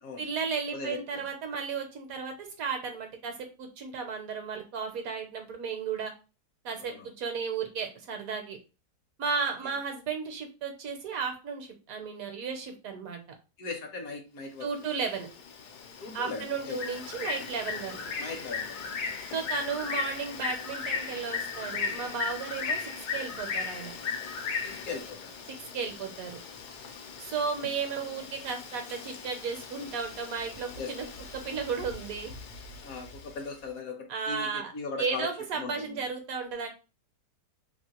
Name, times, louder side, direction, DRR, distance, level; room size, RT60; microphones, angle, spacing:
voice 1, 0.2-6.1 6.6-8.6 9.2-13.2 14.6-15.3 16.1-18.0 19.3-23.9 25.5-26.4 27.2-31.0 31.3-32.3 34.1-34.7 35.0-36.7, right 5 dB, 70° right, 5 dB, 1.0 m, -34 dB
voice 2, 0.7-1.2 6.8-7.1 9.6-9.8 13.6-14.7 16.0-16.8 18.2-19.0 24.6-25.3 27.3-27.4 30.8-31.2 32.8-36.0, left 4 dB, 65° left, 4 dB, 1.0 m, -39 dB
Bird, 14.7-33.5, left 5 dB, 90° left, 1.2 m, -37 dB
2.9 x 2.5 x 2.8 m, 0.31 s
omnidirectional pair, 1.7 m